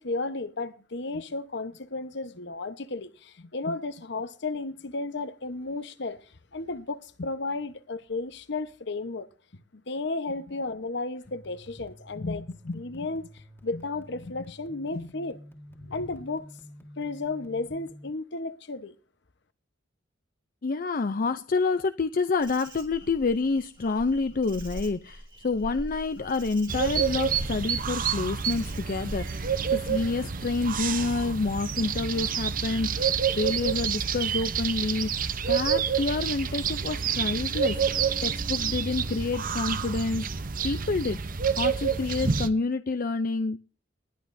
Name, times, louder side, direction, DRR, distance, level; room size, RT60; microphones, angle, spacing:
voice 1, 0.0-6.2 6.5-9.3 9.9-12.4 12.7-15.4 15.8-16.5 17.0-18.9, left 3 dB, 65° left, 1.0 m, -33 dB
sound 1, 11.2-18.1, equal, 10° left, 1.8 m, -49 dB
voice 2, 12.2-13.1 13.7-13.8 14.9-15.1 20.6-40.3 40.6-41.2 41.6-43.6, left 3 dB, 45° left, 0.5 m, -28 dB
Insect, 22.4-30.8, equal, 25° right, 2.4 m, -43 dB
sound 2, 26.7-42.5, right 7 dB, 45° right, 0.8 m, -28 dB
20.5 x 10.5 x 2.7 m
head